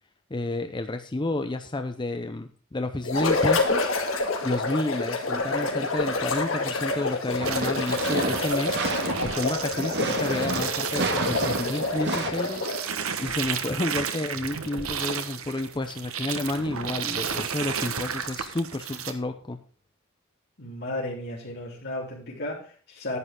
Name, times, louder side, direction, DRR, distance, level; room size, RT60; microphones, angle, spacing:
voice 1, 0.3-3.9 4.4-8.8 9.2-19.6, left 2 dB, 20° left, 8 dB, 0.6 m, -30 dB
sound 1, 3.0-12.9, left 3 dB, 70° left, 2.2 m, -28 dB
sound 2, 7.3-12.3, right 2 dB, 55° right, 1.8 m, -30 dB
sound 3, 7.4-19.1, right 7 dB, 85° right, 1.2 m, -33 dB
voice 2, 20.6-23.2, left 1 dB, 50° left, -5 dB, 3.9 m, -34 dB
11.0 x 10.0 x 3.7 m, 0.40 s
head